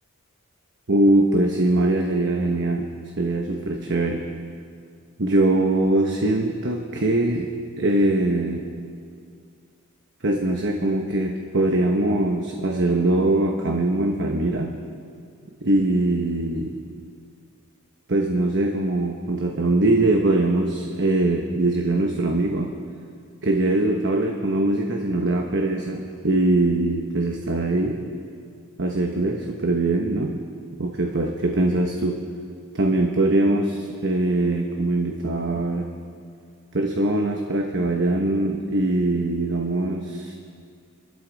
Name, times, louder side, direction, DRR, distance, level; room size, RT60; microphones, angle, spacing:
voice 1, 0.9-2.9 3.2-4.2 5.2-7.5 7.8-8.6 10.2-14.7 15.6-16.7 18.1-22.7 23.4-28.0 28.8-30.3 30.8-32.2 32.7-35.9 36.7-40.3, right 2 dB, 55° right, 2 dB, 1.1 m, -22 dB
26.5 x 13.5 x 4.1 m, 2.3 s
head